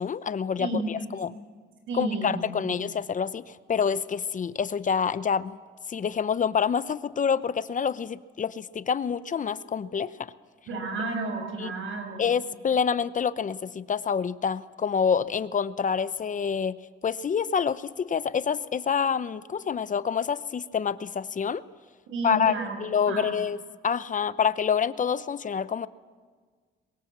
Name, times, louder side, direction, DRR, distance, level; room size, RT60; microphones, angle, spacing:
voice 1, 0.0-1.3 1.9-5.6 5.9-10.3 11.6-11.7 12.2-16.8 17.0-21.6 22.2-22.5 22.8-23.6 23.8-25.9, left 7 dB, 40° left, 15 dB, 0.8 m, -27 dB
voice 2, 0.6-1.0 1.9-2.7 10.7-12.3 22.1-22.8 23.1-23.3, right 2 dB, 75° right, 4 dB, 6.7 m, -32 dB
23.5 x 21.0 x 7.5 m, 1.5 s
cardioid pair, 90°, 20 cm